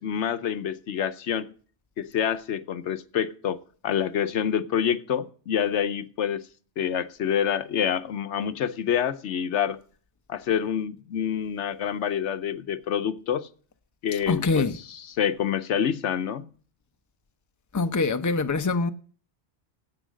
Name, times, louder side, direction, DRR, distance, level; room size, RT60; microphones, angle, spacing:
voice 1, 0.0-1.5 2.0-3.6 3.8-6.5 6.8-9.8 10.3-13.5 14.0-16.5, left 8 dB, 80° left, 1.0 m, -27 dB
voice 2, 14.1-14.8 17.7-18.9, left 3 dB, 20° left, 0.6 m, -24 dB
10.0 x 8.2 x 6.3 m
omnidirectional pair, 1.2 m